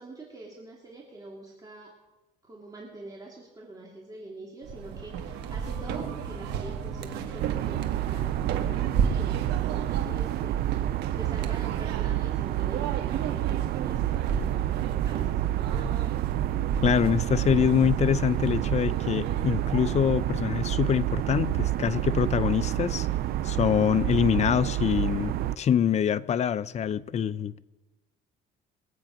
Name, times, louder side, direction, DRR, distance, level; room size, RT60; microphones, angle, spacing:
voice 1, 0.0-1.9 2.4-15.9, right 2 dB, 20° right, -3 dB, 2.8 m, -45 dB
sound 1, 4.6-20.0, right 7 dB, 90° right, 1.4 m, -34 dB
sound 2, 7.4-25.6, right 14 dB, 65° right, 0.5 m, -29 dB
voice 2, 16.8-23.1 23.4-27.5, left 8 dB, 40° left, 14 dB, 0.6 m, -25 dB
22.5 x 8.7 x 5.2 m, 1.1 s
cardioid pair, 110°, 17 cm